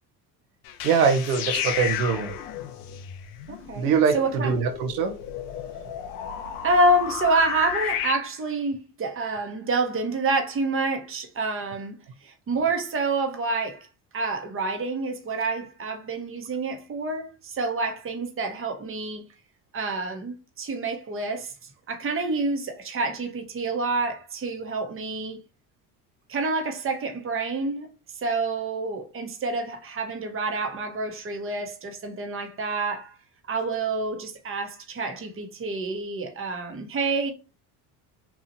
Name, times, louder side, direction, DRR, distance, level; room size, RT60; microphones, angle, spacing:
sound 1, 0.6-8.1, left 9 dB, 85° left, 0.6 m, -33 dB
voice 1, 0.8-2.4 3.8-5.2, right 6 dB, 90° right, 0.6 m, -23 dB
voice 2, 3.5-4.5 6.6-12.0 12.2-13.9 14.1-19.2 19.7-21.5 21.9-25.4 26.3-27.9 28.2-33.2 33.5-37.3, right 2 dB, 30° right, 0.8 m, -28 dB
2.9 x 2.3 x 2.6 m
supercardioid pair, 80°, 44 cm